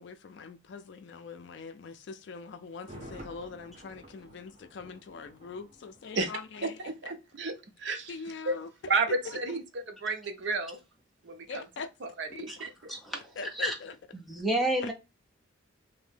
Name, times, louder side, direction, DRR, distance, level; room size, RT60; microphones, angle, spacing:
voice 1, 0.0-6.8 8.1-8.7 9.1-9.4 11.5-11.9 13.4-14.0 14.8-14.9, left 5 dB, 60° left, 0.4 m, -42 dB
Thunder, 2.7-6.6 6.9-7.0, equal, 30° right, 1.0 m, -50 dB
voice 2, 6.8-7.5 7.8-8.1 8.5-8.6 8.9-9.6 10.0-10.8 11.2-11.5 12.0-12.7, right 3 dB, 60° right, 0.6 m, -31 dB
voice 3, 12.9-13.7 14.3-14.9, right 1 dB, ahead, 0.6 m, -30 dB
2.7 x 2.1 x 3.3 m
head